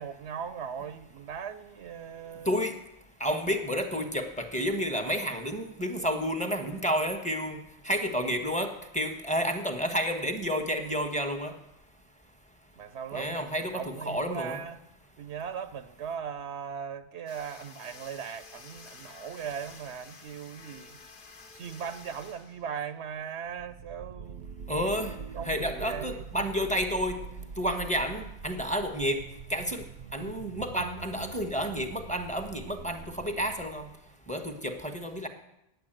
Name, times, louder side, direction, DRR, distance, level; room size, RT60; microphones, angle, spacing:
voice 1, 0.0-2.6 12.8-13.4 13.7-14.8 15.2-21.0 21.5-24.9 25.3-26.2, right 7 dB, 80° right, 11 dB, 1.0 m, -39 dB
voice 2, 3.2-7.6 7.8-11.5 13.1-14.6 24.7-25.2 25.4-27.2 27.6-29.2 29.5-29.8 30.1-33.9 34.3-35.3, equal, 5° left, 5 dB, 1.1 m, -30 dB
sound 1, 17.3-23.2, left 4 dB, 55° left, 1.2 m, -51 dB
sound 2, 23.4-34.1, right 6 dB, 60° right, 0.7 m, -44 dB
9.8 x 7.9 x 8.9 m, 0.84 s
omnidirectional pair, 1.1 m